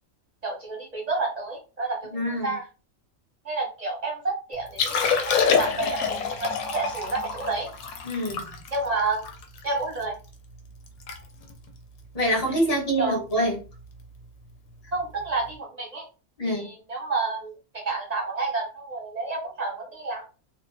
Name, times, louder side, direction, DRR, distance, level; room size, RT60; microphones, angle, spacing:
voice 1, 0.4-2.7 3.4-7.7 8.7-9.2 9.6-10.1 13.0-13.2 14.9-16.1 16.4-20.2, right 3 dB, 40° right, -2 dB, 0.6 m, -30 dB
voice 2, 2.1-2.5 8.0-8.4 12.1-13.6 16.4-16.6, right 1 dB, 30° left, -2 dB, 0.9 m, -25 dB
Liquid, 4.7-10.0 10.5-10.6 10.9-11.2 11.4-11.7 12.3-12.5 14.0-14.1, left 6 dB, 75° left, 0.9 m, -27 dB
2.5 x 2.1 x 2.5 m, 0.34 s
omnidirectional pair, 1.5 m